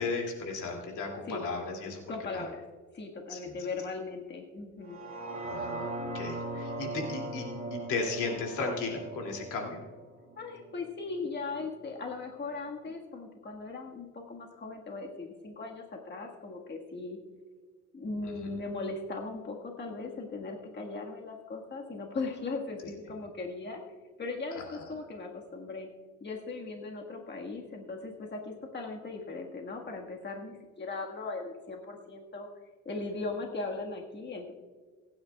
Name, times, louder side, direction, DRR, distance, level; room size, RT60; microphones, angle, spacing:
voice 1, 0.0-2.0 2.3-2.5 3.3-3.6 5.4-9.8 18.2-18.5 24.6-24.8, left 4 dB, 80° left, 0 dB, 2.6 m, -35 dB
voice 2, 2.1-2.6 2.9-5.0 10.3-17.2 17.9-23.8 24.2-25.9 26.2-32.5 32.8-34.5, left 3 dB, 35° left, 0 dB, 1.7 m, -38 dB
sound 1, 4.8-11.0 11.4-11.5, right 2 dB, 30° right, 2.5 m, -39 dB
23.5 x 9.5 x 2.3 m, 1.5 s
cardioid pair, 90°, 30 cm